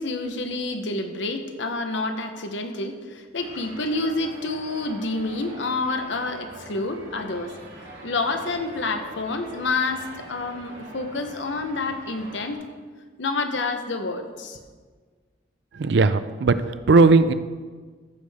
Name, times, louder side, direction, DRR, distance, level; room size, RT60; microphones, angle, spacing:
voice 1, 0.0-7.5 8.0-12.6 13.2-14.6, left 3 dB, 75° left, 6 dB, 0.9 m, -28 dB
sound 1, 3.4-12.5, right 1 dB, 90° right, 3.1 m, -43 dB
voice 2, 15.8-16.6 16.9-17.3, right 3 dB, 65° right, 13 dB, 0.4 m, -16 dB
14.0 x 6.5 x 3.5 m, 1.5 s
head